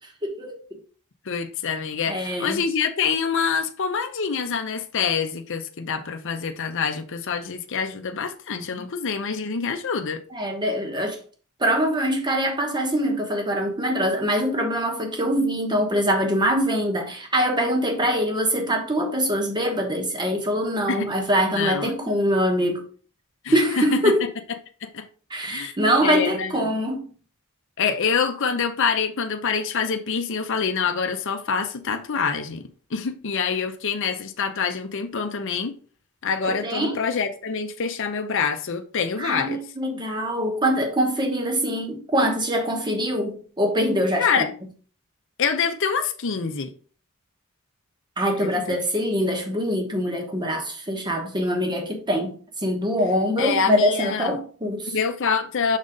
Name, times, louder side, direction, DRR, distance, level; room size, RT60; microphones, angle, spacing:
voice 1, 0.2-0.6 2.1-2.6 10.3-11.2 11.6-22.9 23.5-24.2 25.3-27.1 36.4-37.0 39.2-44.5 48.2-55.0, equal, 20° right, 1.2 m, -24 dB
voice 2, 1.3-10.2 20.9-21.1 21.5-22.2 23.4-24.1 24.8-25.1 25.4-25.7 26.0-26.7 27.8-35.7 36.2-39.6 44.2-44.5 45.4-46.7 48.4-48.8 53.4-54.4 54.9-55.8, left 6 dB, 55° left, 0.6 m, -26 dB
6.3 x 3.9 x 3.8 m
head